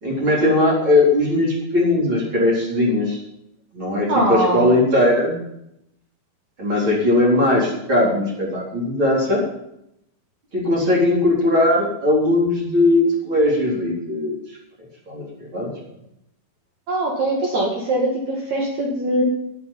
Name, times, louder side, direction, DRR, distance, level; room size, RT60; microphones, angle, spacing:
voice 1, 0.0-3.2 3.7-5.3 6.6-9.4 10.5-15.7, left 1 dB, 35° right, -4 dB, 4.5 m, -19 dB
voice 2, 4.1-4.7 16.9-19.2, right 1 dB, 55° right, -2 dB, 3.3 m, -22 dB
12.0 x 10.5 x 7.2 m, 0.80 s
omnidirectional pair, 4.4 m